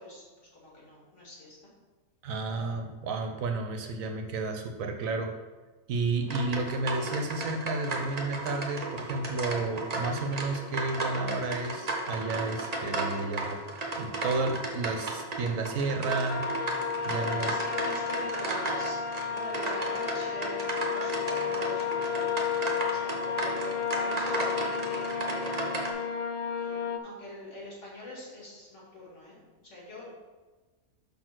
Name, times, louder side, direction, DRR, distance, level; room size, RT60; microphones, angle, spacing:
voice 1, 0.0-1.7 17.1-19.0 19.3-26.2 26.6-30.1, left 1 dB, 55° left, -5 dB, 2.3 m, -44 dB
voice 2, 2.2-5.3 5.9-13.6 13.9-16.5 17.0-17.5, right 3 dB, 70° right, 5 dB, 1.0 m, -32 dB
sound 1, 6.3-25.9, right 2 dB, 35° right, 0.8 m, -34 dB
sound 2, 16.3-27.0, left 7 dB, 70° left, 0.5 m, -32 dB
5.4 x 4.4 x 6.0 m, 1.3 s
omnidirectional pair, 1.6 m